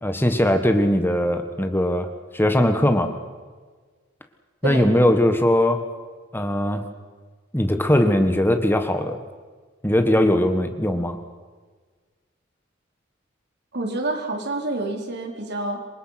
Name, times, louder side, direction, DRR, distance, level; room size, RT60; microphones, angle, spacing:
voice 1, 0.0-2.1 2.3-3.1 4.6-5.8 6.3-6.9 7.5-9.2 9.8-11.2, left 1 dB, 10° left, 7 dB, 1.5 m, -20 dB
voice 2, 13.7-15.8, right 2 dB, 60° right, 3 dB, 4.4 m, -27 dB
27.5 x 24.5 x 6.0 m, 1.5 s
head